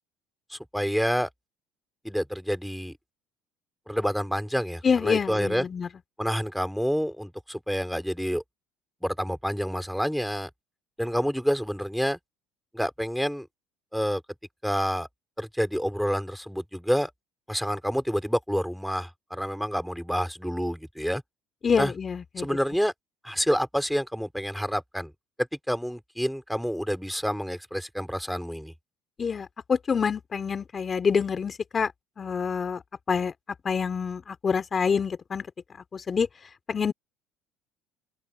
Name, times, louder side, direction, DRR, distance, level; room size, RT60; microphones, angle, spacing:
voice 1, 0.5-1.3 2.0-2.9 3.9-5.7 6.2-8.4 9.0-10.5 11.0-12.2 12.7-13.5 13.9-14.2 14.6-15.1 15.4-17.1 17.5-21.2 21.8-21.9 22.4-22.9 23.2-25.1 25.7-28.7, equal, ahead, 3.7 m, -28 dB
voice 2, 4.8-5.9 21.6-22.5 29.2-31.9 32.2-32.8 33.1-33.3 33.6-35.5 35.9-36.3 36.7-36.9, left 6 dB, 30° left, 3.3 m, -26 dB
open air
supercardioid pair, 100°, 0 cm